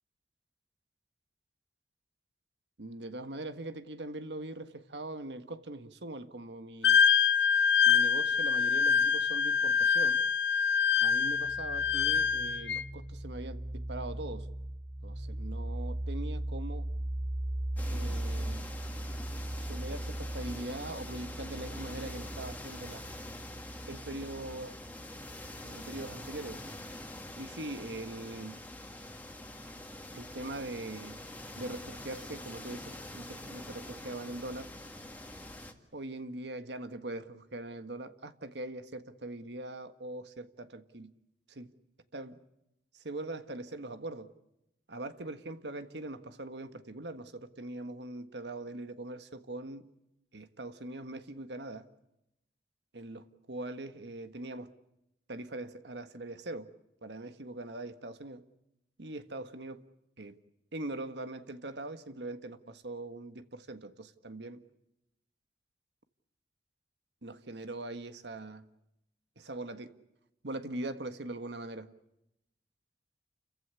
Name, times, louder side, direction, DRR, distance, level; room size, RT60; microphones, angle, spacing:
voice 1, 2.8-7.0 7.8-10.2 11.0-14.5 15.0-16.9 17.9-18.7 19.6-23.0 23.9-24.8 25.6-26.6 27.4-28.6 30.1-31.2 31.5-34.7 35.9-41.1 41.5-41.7 42.1-42.4 42.9-44.3 44.9-49.9 50.3-51.9 52.9-54.7 55.3-56.7 57.0-58.5 59.0-59.8 60.2-60.4 60.7-64.6 67.2-68.7 69.4-70.0 70.4-71.9, right 2 dB, 75° right, 1.6 m, -42 dB
Wind instrument woodwind instrument, 6.8-12.8, left 7 dB, 80° left, 0.8 m, -25 dB
sound 1, 11.1-26.5, right 1 dB, 25° right, 2.4 m, -39 dB
sound 2, 17.8-35.7, left 1 dB, 10° left, 2.0 m, -45 dB
29.5 x 15.5 x 9.8 m
head